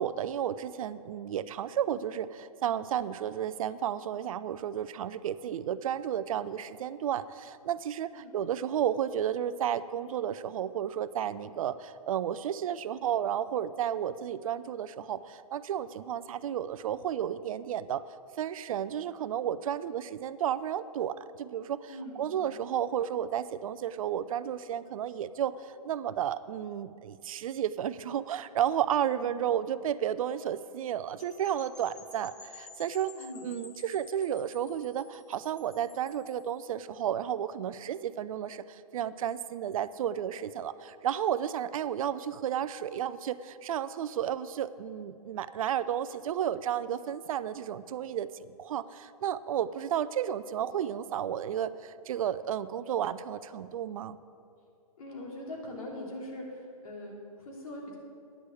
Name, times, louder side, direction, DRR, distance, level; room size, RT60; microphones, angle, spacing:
voice 1, 0.0-18.0 18.4-54.2, right 10 dB, 65° right, 14 dB, 0.5 m, -32 dB
voice 2, 21.9-22.5 29.0-29.3 33.2-33.5 55.0-58.0, left 1 dB, 65° left, -1 dB, 3.1 m, -42 dB
sound 1, 31.2-36.5, left 4 dB, 20° left, 1.6 m, -52 dB
10.0 x 6.3 x 8.4 m, 2.5 s
hypercardioid pair, 130°, 19 cm